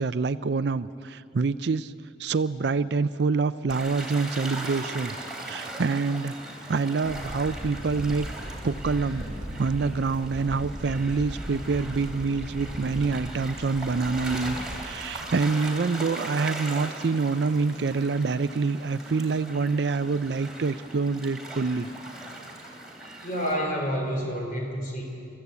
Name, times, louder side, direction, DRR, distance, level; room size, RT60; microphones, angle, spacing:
voice 1, 0.0-1.9 2.2-5.2 5.4-6.3 6.7-8.3 8.6-9.3 9.5-21.9, right 4 dB, 60° right, 14 dB, 0.4 m, -26 dB
Gull seagull / Waves surf, 3.7-23.5, right 2 dB, 5° right, 3.0 m, -39 dB
sound 1, 7.0-14.8, equal, 15° left, 6.8 m, -38 dB
voice 2, 23.2-25.0, equal, 45° left, 0 dB, 4.6 m, -29 dB
26.5 x 14.0 x 8.4 m, 2.6 s
head